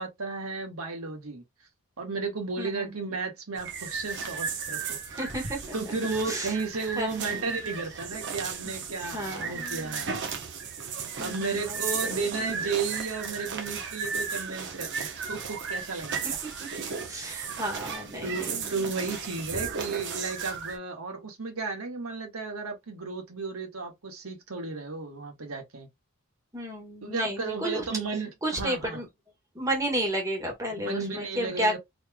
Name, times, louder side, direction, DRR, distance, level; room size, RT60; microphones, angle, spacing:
voice 1, 0.0-1.4 2.0-5.0 5.3-10.2 11.2-16.4 18.2-25.9 27.0-29.0 30.7-31.8, right 4 dB, 70° right, 1.4 m, -34 dB
voice 2, 2.6-2.9 5.1-5.7 6.3-6.5 6.9-7.4 8.6-8.7 9.1-10.0 11.2-11.9 16.6-16.7 17.0-18.7 26.5-27.8 28.4-29.1 29.5-31.8, right 1 dB, 15° right, 1.4 m, -32 dB
sound 1, 3.6-20.8, right 6 dB, 55° right, 0.9 m, -35 dB
4.0 x 3.2 x 2.2 m
head